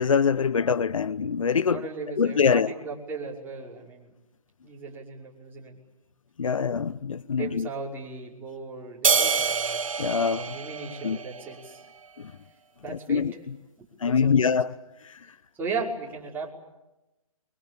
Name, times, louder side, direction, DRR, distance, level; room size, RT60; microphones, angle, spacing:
voice 1, 0.0-1.8 2.2-2.7 6.4-7.7 10.0-10.6 11.0-11.2 12.2-12.3 12.9-13.6 14.0-14.8 15.0-15.2, left 6 dB, 65° left, 0.9 m, -24 dB
voice 2, 1.7-4.1 4.6-5.8 7.4-9.8 10.4-11.8 12.8-13.3 14.0-14.6 15.6-16.5, right 4 dB, 10° right, 5.6 m, -36 dB
sound 1, 9.0-11.7, right 5 dB, 65° right, 1.1 m, -26 dB
29.0 x 23.5 x 8.6 m
figure-of-eight pair, 130°, 18 cm